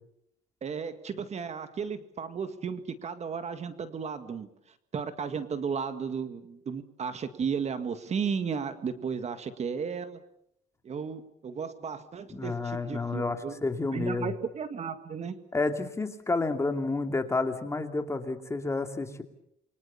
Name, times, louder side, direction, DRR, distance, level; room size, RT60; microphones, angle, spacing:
voice 1, 0.6-4.5 4.9-10.2 10.8-13.6 13.9-15.4, right 6 dB, 40° right, 10 dB, 1.9 m, -34 dB
voice 2, 12.3-14.3 15.5-19.2, left 3 dB, 15° left, 6 dB, 2.7 m, -30 dB
28.0 x 24.0 x 7.0 m, 0.74 s
cardioid pair, 110°, 17 cm